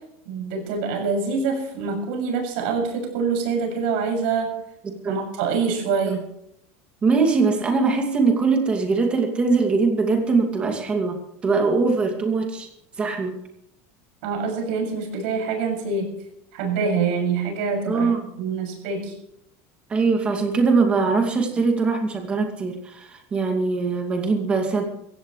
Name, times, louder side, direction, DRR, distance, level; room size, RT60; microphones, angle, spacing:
voice 1, 0.3-4.5 5.1-6.2 14.2-16.1 16.5-19.1, right 5 dB, 60° right, 1 dB, 7.1 m, -25 dB
voice 2, 4.8-5.2 6.1-6.2 7.0-12.7 13.0-13.4 17.8-18.3 19.9-24.8, right 4 dB, 15° right, 3 dB, 2.5 m, -22 dB
23.0 x 16.0 x 3.3 m, 0.78 s
cardioid pair, 175°, 7 cm